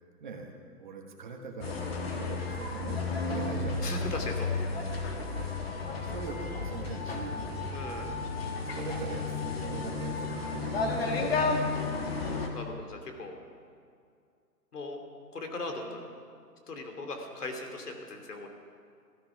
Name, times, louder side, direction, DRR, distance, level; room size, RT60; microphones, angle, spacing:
voice 1, 0.2-4.2 5.3-5.6 6.0-7.6 8.7-11.7, right 4 dB, 30° right, 2 dB, 1.3 m, -42 dB
sound 1, 1.6-12.5, left 3 dB, 40° left, 1.6 m, -32 dB
voice 2, 3.8-4.5 7.7-8.1 12.5-13.4 14.7-15.0 15.3-16.0 16.7-18.5, left 2 dB, 70° left, 4 dB, 2.9 m, -38 dB
15.5 x 13.5 x 5.9 m, 2.3 s
hypercardioid pair, 170°, 48 cm